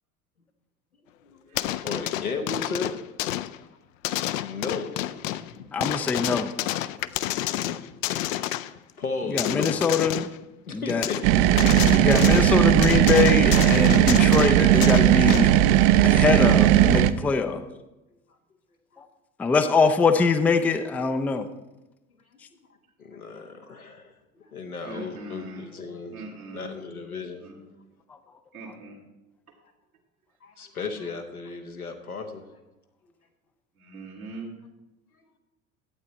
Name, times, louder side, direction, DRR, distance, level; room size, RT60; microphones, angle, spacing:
voice 1, 1.2-2.9 3.4-3.7 4.2-5.6 7.1-7.2 7.5-7.9 8.3-9.9 10.7-11.2 23.0-26.2 26.5-27.4 30.4-32.4, left 4 dB, 85° left, 4 dB, 1.1 m, -35 dB
sound 1, 1.5-3.6 4.0-5.5 5.8-8.8 9.4-10.4 10.9-11.3 11.6-12.5 12.8-15.6 16.1-16.2, left 14 dB, 65° left, 0.5 m, -30 dB
voice 2, 5.7-6.5 9.3-10.3 10.7-11.0 11.9-15.5 16.0-17.6 19.4-21.5, left 4 dB, 5° left, 9 dB, 0.3 m, -23 dB
sound 2, 11.2-17.1, right 12 dB, 50° right, 0.5 m, -17 dB
voice 3, 24.8-25.7 26.1-26.7 27.4-27.6 28.5-29.0 33.8-34.5, right 3 dB, 85° right, -6 dB, 1.7 m, -40 dB
11.5 x 8.4 x 4.2 m, 1.0 s
figure-of-eight pair, 70°, 43 cm